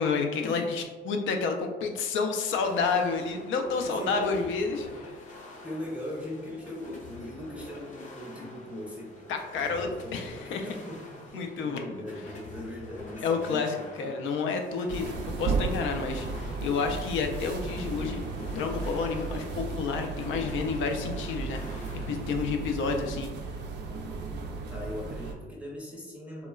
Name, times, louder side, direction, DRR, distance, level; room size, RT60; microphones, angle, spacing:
voice 1, 0.0-4.9 9.3-10.7 11.3-12.0 13.2-15.0 15.4-23.3, left 5 dB, 75° left, 4 dB, 0.4 m, -30 dB
sound 1, 2.5-22.3, left 1 dB, 40° left, 0.7 m, -45 dB
voice 2, 3.8-4.3 5.6-14.2 24.7-26.5, left 1 dB, 5° right, -4 dB, 0.5 m, -40 dB
sound 2, 14.9-25.3, right 4 dB, 60° right, 0.4 m, -35 dB
2.9 x 2.2 x 2.3 m, 1.3 s
cardioid pair, 90°, 20 cm